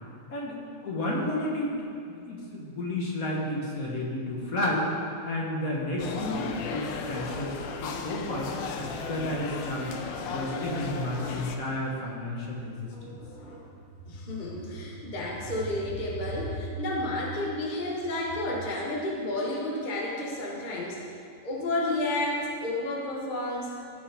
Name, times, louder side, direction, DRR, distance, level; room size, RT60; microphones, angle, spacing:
voice 1, 0.8-1.7 2.1-4.9 5.2-7.5 7.8-9.9 10.3-12.7, left 1 dB, 55° left, -3 dB, 1.6 m, -31 dB
sound 1, 6.0-11.6, left 5 dB, 90° left, 1.4 m, -35 dB
voice 2, 12.9-13.7 14.1-21.0 21.4-23.7, left 1 dB, 30° left, -3 dB, 1.0 m, -31 dB
14.0 x 5.2 x 3.5 m, 2.5 s
omnidirectional pair, 1.9 m